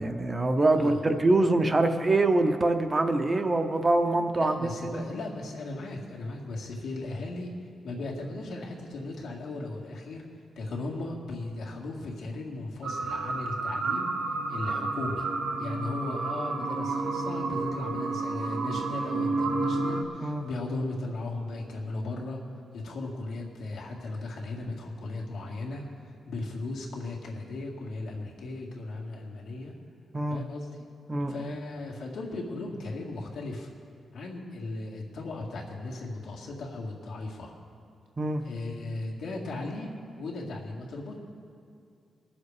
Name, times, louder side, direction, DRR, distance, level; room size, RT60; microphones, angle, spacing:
voice 1, 0.0-5.1 20.2-20.4 30.1-30.4 31.1-31.3 38.2-38.4, right 2 dB, 20° right, 7 dB, 0.7 m, -24 dB
voice 2, 4.3-7.5 7.8-10.2 10.6-14.1 14.5-15.3 15.6-22.4 22.7-25.8 26.3-29.7 30.3-30.7 31.3-33.7 34.1-37.5 38.4-41.2, left 2 dB, 80° left, -2 dB, 2.1 m, -36 dB
sound 1, 12.8-20.0, right 3 dB, 75° right, 1.3 m, -30 dB
20.5 x 7.1 x 4.9 m, 2.5 s
wide cardioid pair, 140°, 0 cm